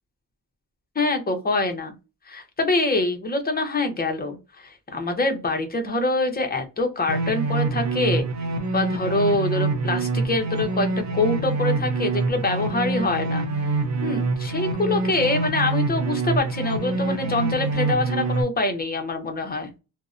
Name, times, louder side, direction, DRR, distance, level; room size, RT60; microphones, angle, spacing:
voice 1, 1.0-1.9 2.3-8.3 8.7-13.7 14.0-19.7, left 2 dB, 25° left, 4 dB, 0.6 m, -25 dB
sound 1, 7.1-18.4, right 3 dB, 45° right, 0.5 m, -25 dB
2.5 x 2.0 x 2.3 m, 0.28 s
wide cardioid pair, 155°, 39 cm